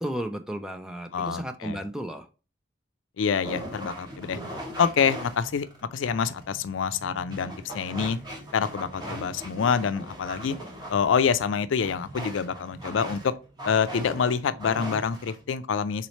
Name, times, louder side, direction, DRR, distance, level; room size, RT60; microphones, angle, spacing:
voice 1, 0.0-2.3, equal, 5° right, 0.3 m, -33 dB
voice 2, 1.1-1.8 3.2-4.4 4.8-8.2 8.5-10.6 10.9-13.3 13.6-16.1, left 6 dB, 90° left, 0.4 m, -26 dB
sound 1, 3.4-15.4, equal, 20° right, 1.1 m, -40 dB
3.9 x 3.1 x 4.1 m
head